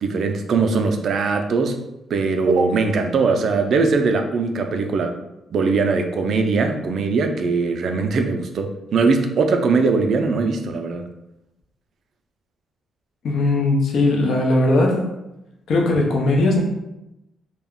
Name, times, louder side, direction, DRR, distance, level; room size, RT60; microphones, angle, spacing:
voice 1, 0.0-1.8 2.1-5.1 5.5-11.1, right 4 dB, 60° right, 5 dB, 0.3 m, -20 dB
voice 2, 13.2-15.1 15.7-16.6, left 2 dB, 65° left, 0 dB, 0.5 m, -18 dB
2.3 x 2.0 x 3.5 m, 0.91 s
cardioid pair, 120°, 0 cm